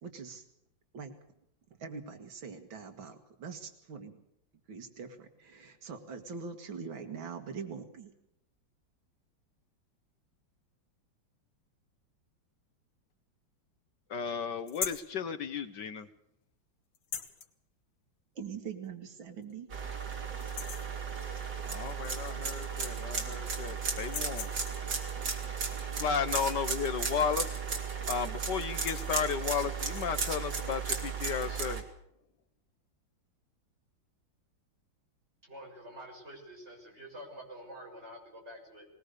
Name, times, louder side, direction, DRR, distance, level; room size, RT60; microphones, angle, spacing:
voice 1, 0.0-0.4 0.9-1.1 1.8-4.1 4.7-8.1 18.4-19.7, right 5 dB, 80° right, 7 dB, 2.5 m, -43 dB
voice 2, 14.1-16.1 21.6-24.5 26.0-27.6 28.1-31.8, left 6 dB, 65° left, 11 dB, 1.6 m, -34 dB
sound 1, 14.7-15.1 16.9-17.5 18.8-18.9 19.4-19.5 19.9-20.1 20.4-21.0 22.3-22.4 22.7-23.4 24.0-24.9 27.3-27.6 27.8-28.1 28.6-29.1 29.8-30.3, left 7 dB, 85° left, 2.3 m, -40 dB
sound 2, 19.7-31.8, right 6 dB, 65° right, 3.4 m, -35 dB
voice 3, 35.4-38.9, equal, 35° right, 0 dB, 6.8 m, -47 dB
21.0 x 20.0 x 6.7 m, 0.80 s
omnidirectional pair, 2.1 m